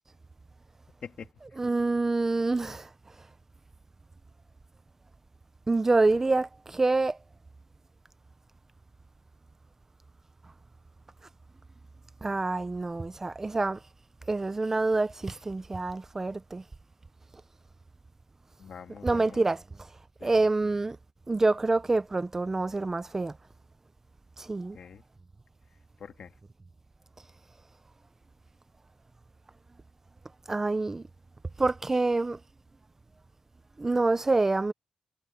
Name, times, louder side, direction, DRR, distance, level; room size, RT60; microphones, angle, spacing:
voice 1, 1.6-3.3 5.7-7.2 12.2-13.8 14.3-16.6 19.0-19.9 20.2-21.0 21.3-23.4 24.4-24.8 30.5-31.1 31.6-32.4 33.8-34.7, right 3 dB, 20° right, 0.6 m, -27 dB
voice 2, 18.6-19.4 20.2-20.5 24.7-25.0 26.0-26.3, left 7 dB, 60° left, 2.0 m, -45 dB
wide cardioid pair, 150°, 2 cm